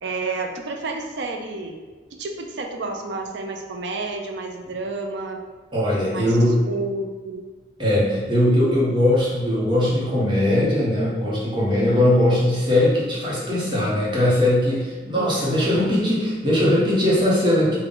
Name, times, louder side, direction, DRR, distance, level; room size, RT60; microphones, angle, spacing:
voice 1, 0.0-1.8 2.2-5.4 6.1-7.4 15.1-15.9, right 3 dB, 75° right, 3 dB, 0.5 m, -30 dB
voice 2, 5.7-6.6 7.8-17.8, left 1 dB, 25° right, -6 dB, 0.9 m, -20 dB
3.8 x 2.2 x 3.8 m, 1.4 s
head